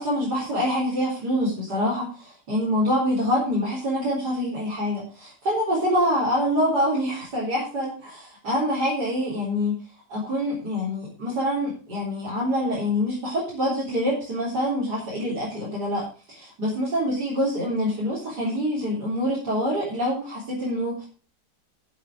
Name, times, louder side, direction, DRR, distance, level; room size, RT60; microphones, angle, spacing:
voice 1, 0.0-9.8 10.1-21.0, equal, 70° right, -7 dB, 4.3 m, -25 dB
11.5 x 7.4 x 5.0 m, 0.36 s
omnidirectional pair, 1.8 m